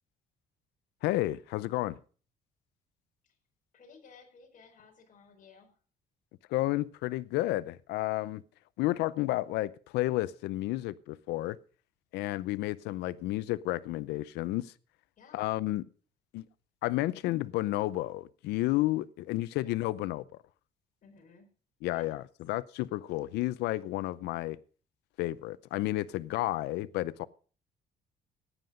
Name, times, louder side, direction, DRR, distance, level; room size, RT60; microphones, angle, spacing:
voice 1, 1.0-2.0 6.5-8.4 8.8-11.6 12.1-14.7 15.3-15.8 16.3-16.4 16.8-20.2 21.8-22.2 22.5-24.6 25.2-27.3, left 17 dB, 85° left, 0.6 m, -31 dB
voice 2, 3.7-5.7 15.2-15.5 19.6-19.7 21.0-21.5 21.8-22.1, left 5 dB, 50° left, 4.8 m, -56 dB
15.0 x 9.6 x 5.1 m
cardioid pair, 110°, 17 cm